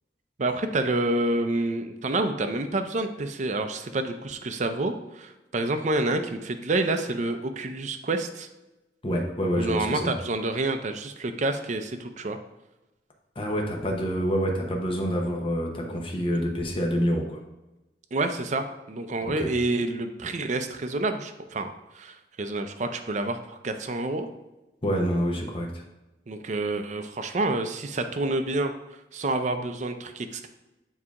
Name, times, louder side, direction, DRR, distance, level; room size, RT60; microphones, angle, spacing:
voice 1, 0.4-8.5 9.6-12.4 18.1-24.3 26.3-28.7 29.1-30.5, right 2 dB, 45° right, 7 dB, 0.5 m, -28 dB
voice 2, 9.0-10.1 13.3-17.4 19.2-19.5 24.8-25.8, equal, 30° left, 1 dB, 0.9 m, -27 dB
7.3 x 2.9 x 4.7 m, 1.0 s
head